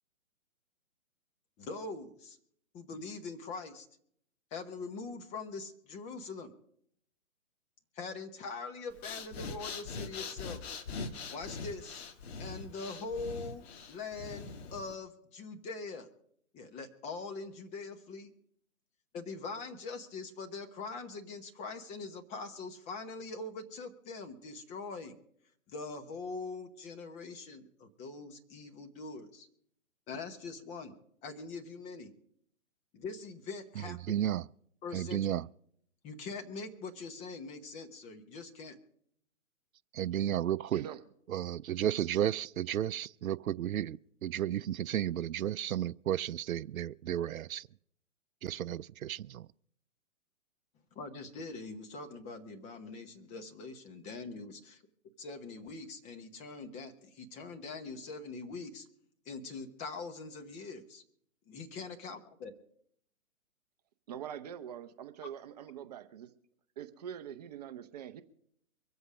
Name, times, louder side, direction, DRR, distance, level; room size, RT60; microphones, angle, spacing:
voice 1, 1.6-2.4 2.7-3.9 4.5-6.5 7.9-10.6 11.3-12.0 12.4-16.1 16.5-18.3 19.1-25.2 25.7-29.5 30.1-30.9 31.2-32.1 32.9-34.2 34.8-35.2 36.0-38.7 50.9-54.8 55.2-58.9 59.2-61.0 61.5-62.5, left 4 dB, 15° left, 1.1 m, -43 dB
Breathing, 8.9-15.0, left 4 dB, 50° left, 1.5 m, -42 dB
voice 2, 33.8-34.5 34.9-35.5 39.9-40.9 41.3-47.7 48.4-49.5, right 11 dB, 80° right, 0.5 m, -33 dB
voice 3, 64.1-66.3 66.8-68.2, right 9 dB, 30° right, 0.7 m, -44 dB
24.0 x 8.1 x 5.0 m
hypercardioid pair, 140°, 42 cm